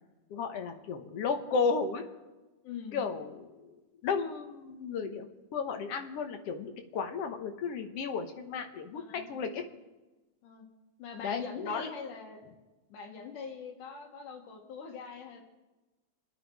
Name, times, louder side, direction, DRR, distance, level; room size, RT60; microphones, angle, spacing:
voice 1, 0.3-2.0 2.9-5.3 5.5-9.6 11.2-11.9, left 5 dB, 60° left, 5 dB, 1.9 m, -34 dB
voice 2, 2.6-3.1 8.9-9.3 10.4-10.7 11.0-12.5 12.9-15.4, left 6 dB, 90° left, 2 dB, 3.2 m, -43 dB
28.0 x 9.4 x 4.7 m, 1.1 s
omnidirectional pair, 3.6 m